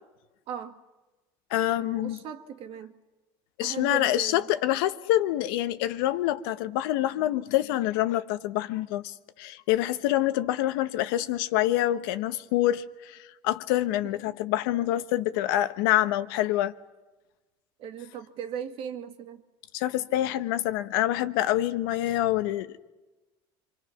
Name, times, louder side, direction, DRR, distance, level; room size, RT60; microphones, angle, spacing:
voice 1, 0.5-0.8 1.8-2.9 3.6-4.5 17.8-19.4, right 7 dB, 55° right, 2.1 m, -38 dB
voice 2, 1.5-2.2 3.6-13.2 13.4-16.7 19.7-22.8, left 14 dB, 80° left, 1.1 m, -26 dB
26.0 x 25.5 x 5.9 m
supercardioid pair, 110°, 11 cm